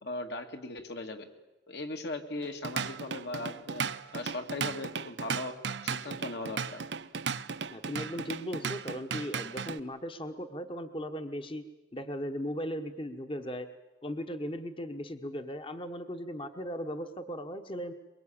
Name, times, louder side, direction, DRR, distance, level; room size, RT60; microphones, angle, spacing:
voice 1, 0.0-1.3 1.7-3.8 4.1-5.6 5.8-6.8, left 2 dB, 65° left, 5 dB, 2.0 m, -38 dB
Drum kit / Drum, 2.4-9.8, right 5 dB, 75° right, 0.8 m, -36 dB
voice 2, 7.7-11.6 11.9-13.7 14.0-17.9, equal, 30° left, 8 dB, 1.1 m, -37 dB
23.5 x 22.5 x 8.7 m, 1.1 s
head